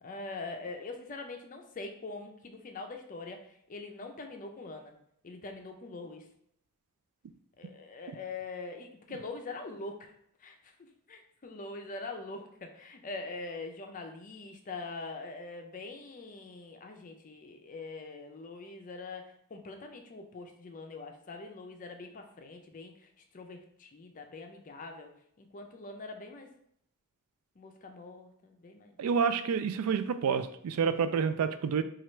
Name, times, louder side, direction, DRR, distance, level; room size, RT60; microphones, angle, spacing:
voice 1, 0.0-4.9 5.2-6.3 7.6-10.1 10.4-23.1 23.3-25.1 25.4-26.5 27.6-29.0, left 3 dB, 35° left, 5 dB, 0.5 m, -43 dB
voice 2, 29.0-31.8, right 6 dB, 90° right, 11 dB, 0.3 m, -28 dB
4.4 x 2.4 x 3.1 m, 0.71 s
head